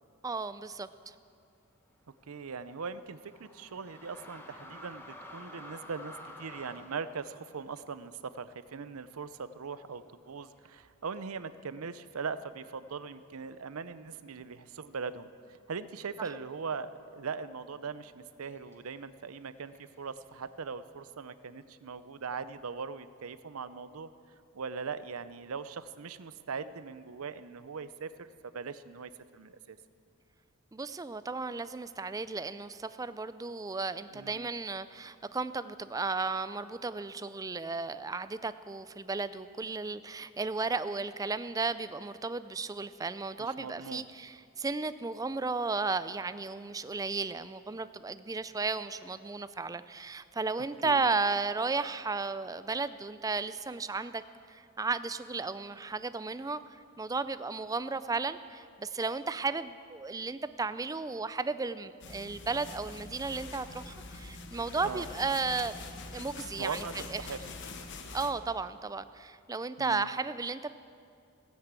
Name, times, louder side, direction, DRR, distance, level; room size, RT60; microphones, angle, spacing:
voice 1, 0.2-1.1 30.7-54.2 54.5-56.6 57.0-65.8 66.1-67.2 68.1-70.7, right 4 dB, 15° right, 13 dB, 0.4 m, -34 dB
sound 1, 1.9-9.5 9.9-10.0 10.8-11.2 12.0-12.1 12.3-14.1 14.4-14.9 15.2-19.0 19.7-20.6, left 1 dB, 10° left, 1.3 m, -52 dB
voice 2, 2.3-15.3 15.7-24.1 24.5-29.8 34.1-34.5 43.4-44.1 50.8-51.0 64.8-65.0 66.6-67.4 69.8-70.1, right 5 dB, 85° right, 14 dB, 0.6 m, -40 dB
sound 2, 62.0-68.3, left 3 dB, 55° left, 1.2 m, -45 dB
16.0 x 9.7 x 8.2 m, 2.4 s
head